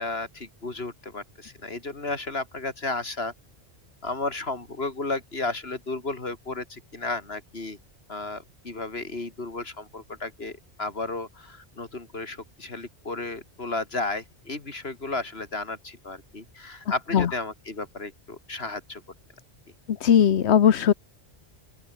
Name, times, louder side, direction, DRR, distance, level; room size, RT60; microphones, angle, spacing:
voice 1, 0.0-3.3 4.0-7.8 8.1-19.0, left 3 dB, 65° left, 3.4 m, -33 dB
voice 2, 20.0-20.9, left 9 dB, 85° left, 1.2 m, -18 dB
open air
omnidirectional pair, 1.1 m